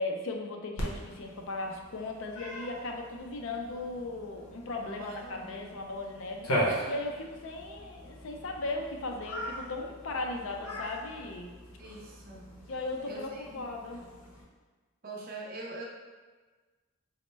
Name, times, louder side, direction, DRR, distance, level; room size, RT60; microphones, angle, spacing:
voice 1, 0.0-11.5 12.7-14.0, left 2 dB, 60° left, 2 dB, 0.4 m, -37 dB
Cat, 0.8-14.4, equal, 90° left, 0.8 m, -39 dB
voice 2, 4.8-5.8 10.3-10.5 11.8-12.5 13.1-13.6 15.0-15.8, right 2 dB, 40° right, -1 dB, 0.5 m, -43 dB
4.0 x 2.1 x 3.2 m, 1.4 s
head